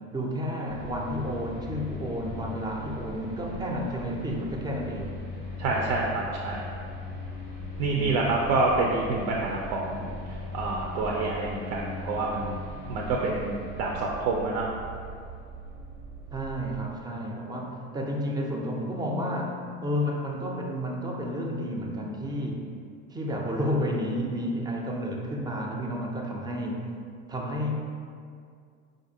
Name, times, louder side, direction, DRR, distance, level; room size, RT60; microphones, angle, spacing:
voice 1, 0.1-5.2 7.9-8.7 16.3-22.7 23.1-26.9 27.3-27.8, equal, 10° right, 0 dB, 0.4 m, -31 dB
sound 1, 0.7-16.8, left 1 dB, 90° right, 1.2 m, -39 dB
voice 2, 5.6-6.6 7.8-10.0 10.5-12.6 12.9-14.7, right 3 dB, 65° right, -1 dB, 0.5 m, -27 dB
4.4 x 2.5 x 2.7 m, 2.2 s
hypercardioid pair, 75°, 41 cm